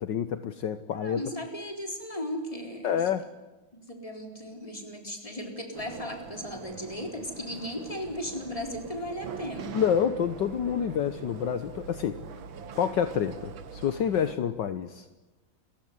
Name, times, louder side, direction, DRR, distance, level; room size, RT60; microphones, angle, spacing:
voice 1, 0.0-1.2 2.8-3.3 9.7-12.2 12.7-15.3, left 8 dB, 70° left, 11 dB, 1.6 m, -28 dB
voice 2, 0.9-3.0 3.7-9.8, left 1 dB, 15° left, 4 dB, 4.3 m, -36 dB
sound 1, 5.7-14.4, right 6 dB, 85° right, 2.2 m, -43 dB
29.0 x 16.0 x 9.6 m, 1.1 s
omnidirectional pair, 2.1 m